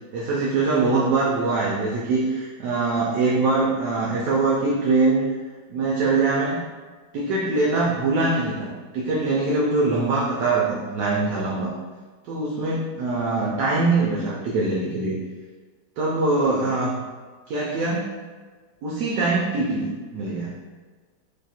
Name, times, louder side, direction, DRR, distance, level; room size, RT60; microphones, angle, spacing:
voice 1, 0.1-5.3 5.7-6.6 7.1-11.7 12.3-15.2 16.0-17.0 17.5-18.1 18.8-20.5, right 3 dB, 75° right, -4 dB, 1.1 m, -23 dB
3.2 x 2.3 x 4.1 m, 1.4 s
omnidirectional pair, 2.1 m